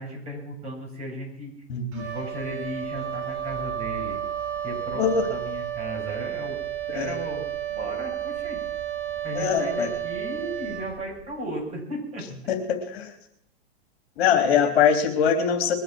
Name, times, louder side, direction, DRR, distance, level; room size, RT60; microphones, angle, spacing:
voice 1, 0.0-1.5 2.0-4.2 4.6-6.6 6.9-7.4 7.7-8.6 9.2-12.2 14.3-14.6, right 1 dB, 20° right, -3 dB, 7.9 m, -35 dB
voice 2, 1.7-2.0 5.0-5.3 6.9-7.1 9.3-9.9 12.5-13.1 14.2-15.7, left 7 dB, 65° left, 4 dB, 3.2 m, -22 dB
Wind instrument woodwind instrument, 1.9-11.4, right 10 dB, 35° right, 4.3 m, -32 dB
22.0 x 7.8 x 7.7 m, 0.74 s
hypercardioid pair, 145°, 33 cm